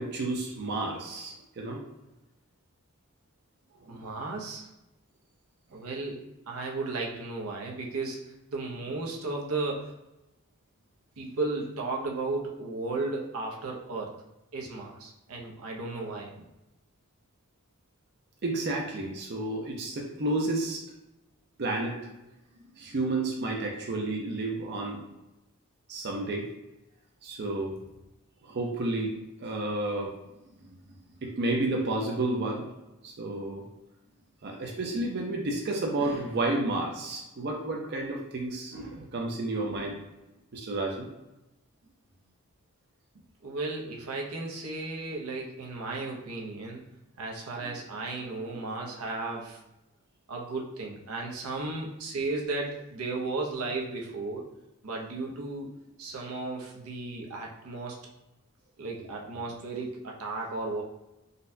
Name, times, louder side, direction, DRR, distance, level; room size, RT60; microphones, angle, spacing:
voice 1, 0.0-1.8 3.9-4.1 18.4-20.8 21.6-22.0 22.8-25.1 25.9-26.5 27.2-27.8 28.4-29.1 29.4-30.1 30.6-30.8 31.2-32.7 33.0-33.6 34.4-40.0 40.5-41.1 47.6-47.7, right 2 dB, 50° right, 0 dB, 0.5 m, -31 dB
voice 2, 3.9-4.7 5.7-9.9 11.2-14.1 14.5-16.3 43.4-46.8 47.2-49.6 50.3-54.5 54.8-55.7 56.0-58.0 58.8-60.8, right 3 dB, 90° right, 0 dB, 0.7 m, -34 dB
3.9 x 2.2 x 2.6 m, 0.94 s
head